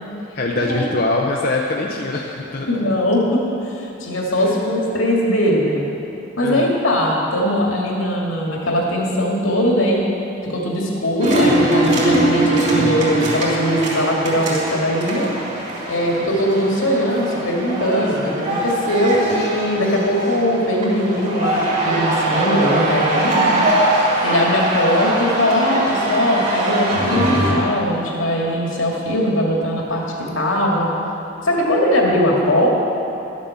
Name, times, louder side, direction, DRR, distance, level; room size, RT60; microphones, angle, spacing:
voice 1, 0.3-2.9 4.3-4.7 6.4-6.7, left 2 dB, 50° left, -1 dB, 0.7 m, -23 dB
voice 2, 2.7-5.8 6.4-10.0 10.4-15.3 15.9-23.7 24.2-30.9 31.4-32.7, equal, 85° left, -2 dB, 2.3 m, -20 dB
sound 1, 11.2-27.5, right 1 dB, 35° right, 3.3 m, -21 dB
12.0 x 7.6 x 7.2 m, 2.9 s
head